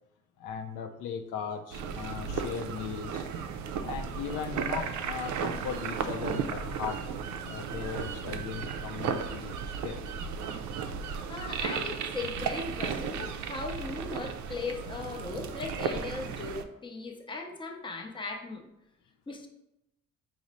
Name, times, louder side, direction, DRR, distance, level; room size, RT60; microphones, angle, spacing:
voice 1, 0.4-3.3 3.8-10.0, left 7 dB, 85° left, 7 dB, 0.5 m, -38 dB
sound 1, 1.7-16.6, right 6 dB, 70° right, 0.4 m, -35 dB
voice 2, 11.3-18.7 19.3-19.5, left 3 dB, 15° left, 2 dB, 0.6 m, -38 dB
4.9 x 2.1 x 4.0 m, 0.86 s
cardioid pair, 90°, 30 cm